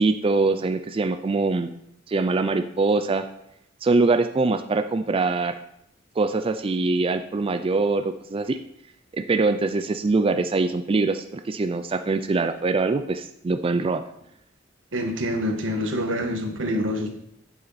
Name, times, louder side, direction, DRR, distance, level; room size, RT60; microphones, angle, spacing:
voice 1, 0.0-1.7 2.1-3.2 3.8-5.5 6.2-8.6 9.1-14.0, right 3 dB, 30° right, 8 dB, 0.4 m, -23 dB
voice 2, 14.9-17.1, equal, 85° right, 3 dB, 1.5 m, -26 dB
8.6 x 6.9 x 4.1 m, 0.76 s
head